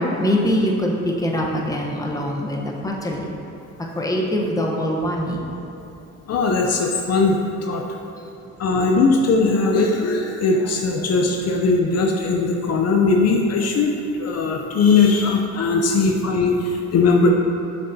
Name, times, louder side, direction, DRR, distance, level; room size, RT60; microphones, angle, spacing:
voice 1, 0.0-3.3 4.0-5.4, equal, 10° left, -1 dB, 1.0 m, -23 dB
voice 2, 6.3-7.8 8.6-17.3, left 3 dB, 55° left, 1 dB, 0.6 m, -19 dB
8.2 x 6.3 x 2.8 m, 2.9 s
cardioid pair, 90°, 30 cm